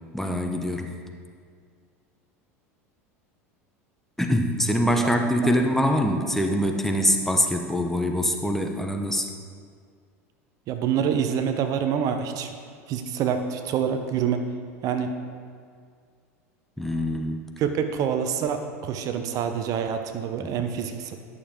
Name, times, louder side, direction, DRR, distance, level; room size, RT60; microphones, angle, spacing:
voice 1, 0.1-1.0 4.2-9.3 16.8-17.5 20.4-20.5, equal, 5° left, 3 dB, 0.8 m, -24 dB
voice 2, 10.7-12.5 12.9-14.4 14.8-15.1 17.6-21.2, right 8 dB, 50° right, 7 dB, 0.7 m, -26 dB
11.0 x 6.8 x 3.7 m, 2.1 s
hypercardioid pair, 85°, 8 cm